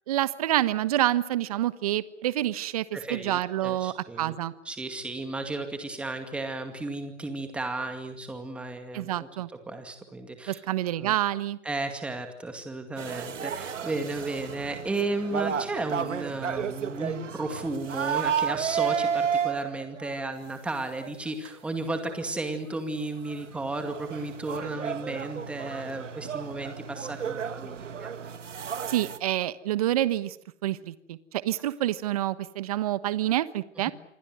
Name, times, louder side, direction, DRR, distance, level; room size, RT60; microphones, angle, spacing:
voice 1, 0.1-2.8 3.1-4.5 8.9-9.5 10.5-11.6 28.9-30.4 30.6-31.2 31.4-33.9, right 13 dB, 30° right, 16 dB, 1.2 m, -27 dB
voice 2, 2.9-4.4 4.7-9.3 9.7-10.6 11.0-11.1 11.6-28.1, right 2 dB, 5° right, 6 dB, 2.2 m, -34 dB
sound 1, 13.0-20.2 20.9-21.1 21.4-21.5 22.2-22.3 22.7-22.8 23.0-29.2, right 7 dB, 85° right, 2.3 m, -32 dB
27.5 x 23.5 x 7.9 m, 0.71 s
hypercardioid pair, 170°, 36 cm